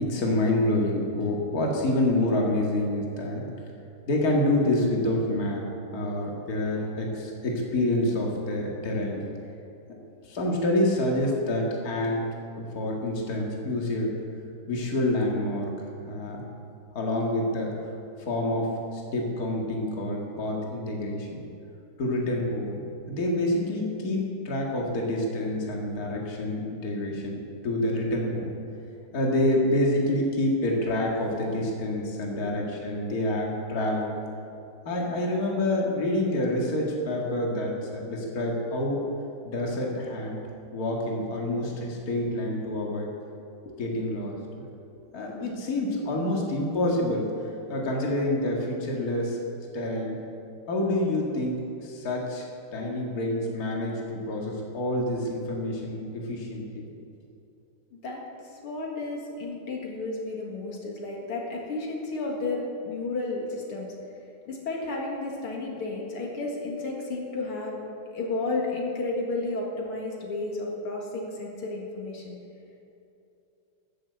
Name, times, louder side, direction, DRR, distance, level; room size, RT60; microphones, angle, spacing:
voice 1, 0.0-3.5 4.1-9.2 10.2-12.2 12.7-14.1 14.7-15.7 16.1-16.4 16.9-17.7 18.2-21.4 22.0-28.5 29.1-34.1 34.9-39.0 39.4-40.4 40.7-43.1 43.8-44.7 45.1-47.3 47.7-49.4 49.7-50.2 50.7-56.9, left 1 dB, 45° left, -1 dB, 2.3 m, -27 dB
voice 2, 57.9-58.2 58.6-63.9 64.5-67.8 68.1-72.4, left 2 dB, 75° left, -1 dB, 2.7 m, -32 dB
14.0 x 7.5 x 7.9 m, 2.7 s
omnidirectional pair, 2.4 m